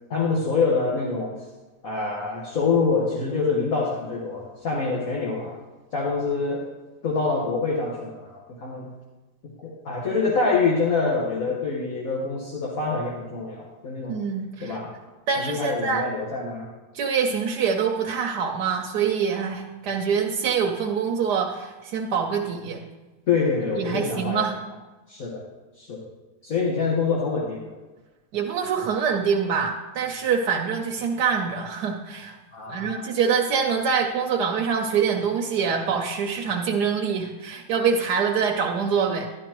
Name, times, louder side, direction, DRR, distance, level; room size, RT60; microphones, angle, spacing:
voice 1, 0.1-1.4 1.8-5.5 5.9-6.6 7.0-8.8 9.4-14.2 14.6-14.9 15.4-16.7 23.3-24.5 25.1-25.4 25.8-26.0 26.4-27.7 32.5-33.0, left 4 dB, 60° left, -5 dB, 1.8 m, -25 dB
voice 2, 14.1-14.8 15.3-16.0 16.9-22.8 23.8-24.5 28.3-32.4 32.7-39.3, right 6 dB, 80° right, 1 dB, 1.3 m, -25 dB
12.5 x 11.0 x 3.0 m, 1.2 s
omnidirectional pair, 1.7 m